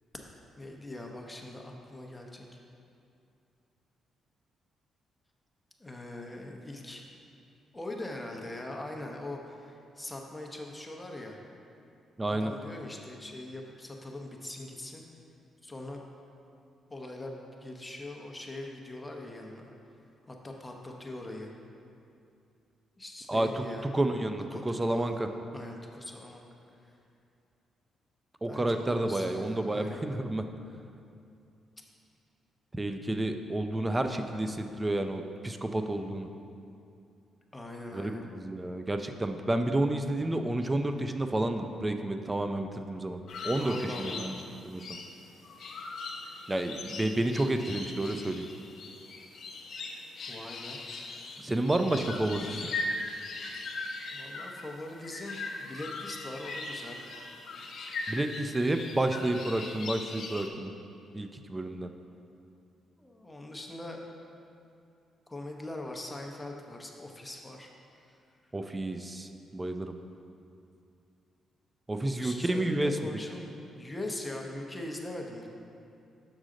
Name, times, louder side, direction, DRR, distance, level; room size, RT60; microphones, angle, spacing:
voice 1, 0.6-2.4 5.8-7.0 7.7-11.4 12.3-15.0 15.6-16.0 16.9-19.7 20.3-21.5 23.0-23.9 24.5-25.2 25.5-26.5 28.4-30.1 37.5-38.3 43.6-44.3 50.3-50.8 54.1-57.0 63.0-64.0 65.3-67.7 68.1-68.2 72.0-73.5 73.8-75.5, left 1 dB, 15° left, 1 dB, 0.8 m, -41 dB
voice 2, 12.2-12.5 23.3-23.6 23.9-25.3 28.4-30.4 32.7-36.3 37.9-44.3 44.6-44.8 46.5-48.4 51.4-52.7 58.1-60.7 61.1-61.9 68.5-70.0 71.9-73.0, right 1 dB, 20° right, 7 dB, 0.4 m, -30 dB
sound 1, 43.3-60.5, left 3 dB, 60° left, 0.7 m, -40 dB
6.4 x 6.2 x 3.8 m, 2.6 s
cardioid pair, 90°, 0 cm